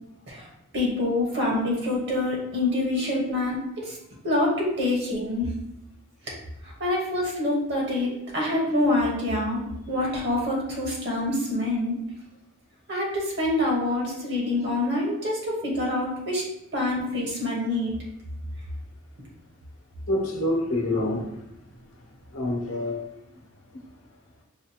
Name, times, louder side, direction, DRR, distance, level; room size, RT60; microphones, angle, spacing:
voice 1, 0.7-4.0 4.2-5.4 6.8-11.9 12.9-16.4 16.7-17.9, left 1 dB, 55° right, 1.3 m, -26 dB
voice 2, 20.1-21.5 22.3-23.1, left 1 dB, 85° left, 0.9 m, -27 dB
4.9 x 2.4 x 2.8 m
head